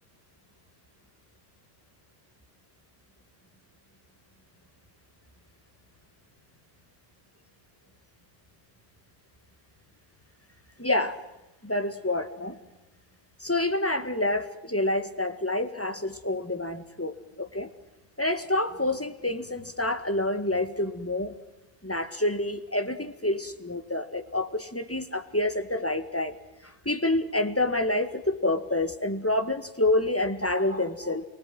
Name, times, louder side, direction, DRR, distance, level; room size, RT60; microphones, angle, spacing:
voice 1, 10.8-11.2 11.6-12.6 13.4-17.7 18.2-21.3 21.8-26.3 26.6-31.2, left 2 dB, 10° left, 8 dB, 1.8 m, -28 dB
28.5 x 23.5 x 7.7 m, 1.0 s
omnidirectional pair, 1.1 m